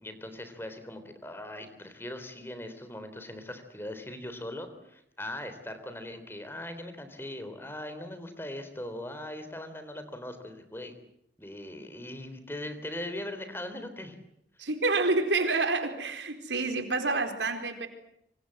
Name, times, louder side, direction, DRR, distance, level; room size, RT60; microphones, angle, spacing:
voice 1, 0.0-10.9 11.4-14.2, left 1 dB, 15° left, 9 dB, 3.5 m, -40 dB
voice 2, 14.6-17.9, right 3 dB, 85° right, 6 dB, 4.4 m, -28 dB
26.5 x 25.5 x 7.8 m, 0.77 s
head